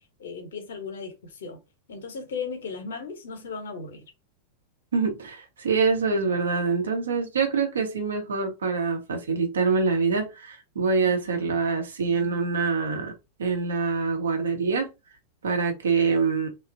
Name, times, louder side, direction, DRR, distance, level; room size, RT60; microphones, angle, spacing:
voice 1, 0.2-1.6 1.9-4.0, left 5 dB, 60° left, 0.8 m, -36 dB
voice 2, 4.9-13.1 13.4-14.9 15.4-16.5, right 4 dB, 70° right, 0.9 m, -25 dB
3.2 x 2.3 x 2.6 m
figure-of-eight pair, 90°, 0 cm